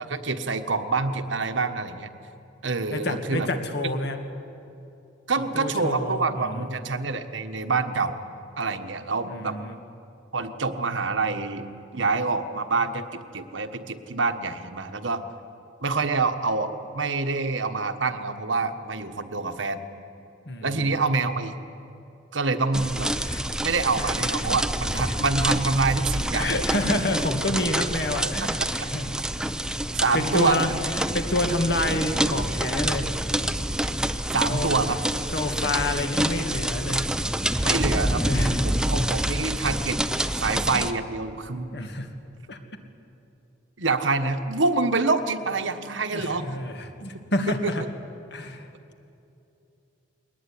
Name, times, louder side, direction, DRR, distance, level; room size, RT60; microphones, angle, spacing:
voice 1, 0.0-2.1 2.6-3.5 5.3-8.2 8.6-9.6 10.3-11.6 11.9-15.2 15.8-19.8 20.6-21.5 22.3-23.1 23.6-26.8 28.8-28.9 29.9-30.8 34.3-35.3 37.6-40.0 40.3-41.8 43.8-46.4 47.6-47.7, right 3 dB, 80° right, 8 dB, 1.4 m, -26 dB
voice 2, 2.9-4.2 5.4-6.7 9.3-9.8 20.5-21.0 23.2-23.4 24.0-24.5 25.0-25.2 26.3-29.2 29.5-29.8 30.1-33.1 34.5-34.7 35.3-37.1 38.2-38.7 41.7-42.1 42.5-42.6 46.1-47.8 48.3-48.7, left 1 dB, 60° left, 6 dB, 2.1 m, -28 dB
sound 1, 22.7-40.9, right 1 dB, 5° right, 0.6 m, -27 dB
21.5 x 19.0 x 9.9 m, 2.7 s
head